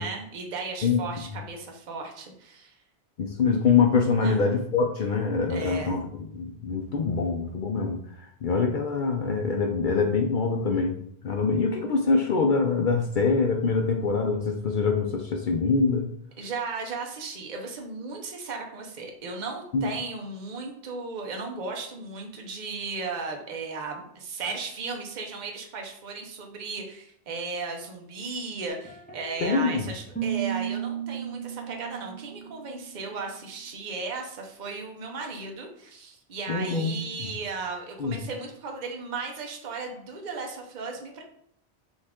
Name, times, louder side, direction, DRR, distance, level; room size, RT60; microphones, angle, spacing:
voice 1, 0.0-2.8 4.2-4.4 5.5-6.0 16.4-41.2, right 4 dB, 50° right, 2 dB, 0.8 m, -36 dB
voice 2, 3.2-6.0 6.3-8.0 8.4-11.0 11.2-16.1 19.7-19.9 29.4-29.9 36.5-37.3 38.0-38.2, left 4 dB, 60° left, 3 dB, 0.6 m, -24 dB
sound 1, 28.7-29.7 30.1-33.0, right 9 dB, 10° left, 0.6 m, -34 dB
5.2 x 2.4 x 3.5 m, 0.67 s
omnidirectional pair, 1.1 m